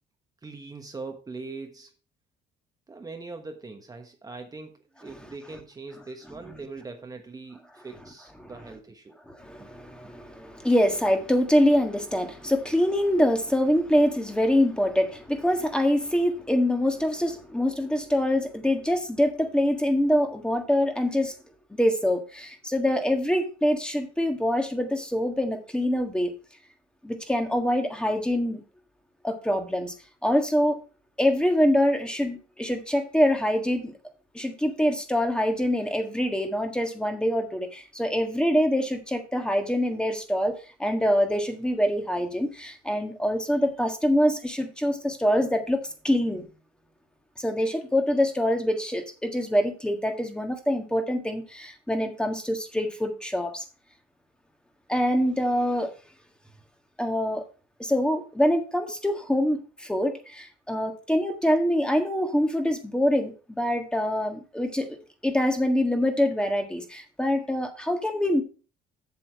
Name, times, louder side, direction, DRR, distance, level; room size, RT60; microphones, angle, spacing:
voice 1, 0.4-1.9 2.9-9.2, right 3 dB, 20° right, 4 dB, 1.1 m, -41 dB
voice 2, 9.3-21.3 21.8-26.3 27.0-28.6 29.2-29.9 30.2-30.8 31.2-33.9 34.3-46.4 47.4-53.6 54.9-55.9 57.0-57.4 57.8-64.9 65.2-68.4, equal, 5° left, 5 dB, 1.6 m, -25 dB
7.9 x 7.0 x 4.5 m, 0.36 s
cardioid pair, 110°, 17 cm